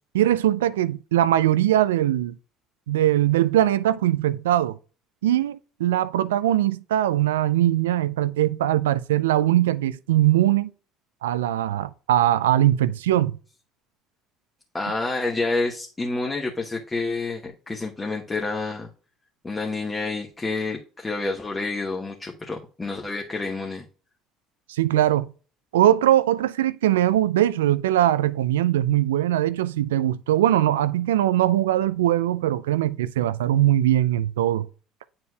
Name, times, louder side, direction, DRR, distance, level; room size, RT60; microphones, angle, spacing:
voice 1, 0.1-2.4 2.9-4.8 5.2-10.7 11.2-13.3 24.7-25.3 25.7-34.7, right 13 dB, 85° right, 0.3 m, -21 dB
voice 2, 14.7-18.9 19.4-23.8, left 3 dB, 20° left, 1.1 m, -28 dB
9.3 x 4.4 x 2.3 m
hypercardioid pair, 65°, 0 cm